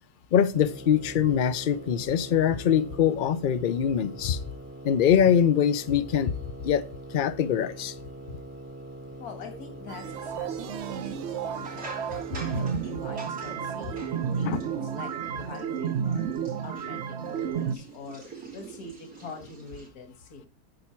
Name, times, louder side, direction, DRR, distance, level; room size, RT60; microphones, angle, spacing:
voice 1, 0.3-4.4 4.8-6.3 6.6-6.9 7.1-7.9 14.4-14.6, left 8 dB, 60° left, 0.5 m, -23 dB
sound 1, 0.5-15.1, right 1 dB, 15° right, 0.4 m, -43 dB
voice 2, 9.2-16.3 16.6-20.5, left 4 dB, 75° left, 2.1 m, -44 dB
sound 2, 9.9-17.8, right 8 dB, 60° right, 0.8 m, -32 dB
sound 3, 11.5-19.9, right 5 dB, 85° right, 3.7 m, -44 dB
8.9 x 7.1 x 4.4 m
omnidirectional pair, 1.6 m